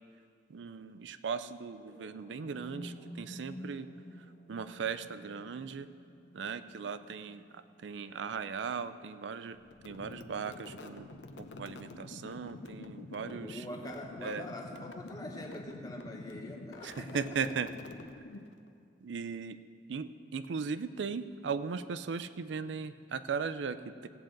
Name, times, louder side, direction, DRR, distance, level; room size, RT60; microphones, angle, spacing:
voice 1, 0.5-3.9 4.5-5.9 6.3-9.6 9.8-11.1 11.4-13.6 14.2-14.4 16.8-17.7 19.0-19.6 19.9-24.1, right 5 dB, 85° right, 12 dB, 0.4 m, -38 dB
sound 1, 1.8-9.8, equal, 55° left, 1.2 m, -51 dB
sound 2, 9.7-18.7, left 2 dB, 80° left, 0.6 m, -47 dB
voice 2, 13.2-17.4, left 1 dB, 20° left, 0 dB, 1.0 m, -44 dB
16.5 x 8.8 x 3.9 m, 2.4 s
head